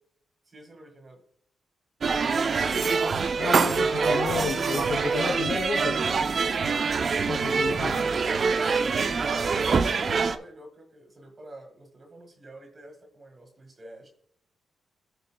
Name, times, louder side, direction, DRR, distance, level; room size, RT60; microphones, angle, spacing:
voice 1, 0.4-1.2 3.2-3.6 8.9-14.1, right 1 dB, 35° right, 4 dB, 1.7 m, -47 dB
sound 1, 2.0-10.4, right 5 dB, 50° right, 0.5 m, -25 dB
voice 2, 3.4-6.2 7.3-8.0, left 5 dB, 70° left, -2 dB, 3.2 m, -32 dB
15.5 x 5.1 x 2.2 m, 0.66 s
cardioid pair, 75°, 0 cm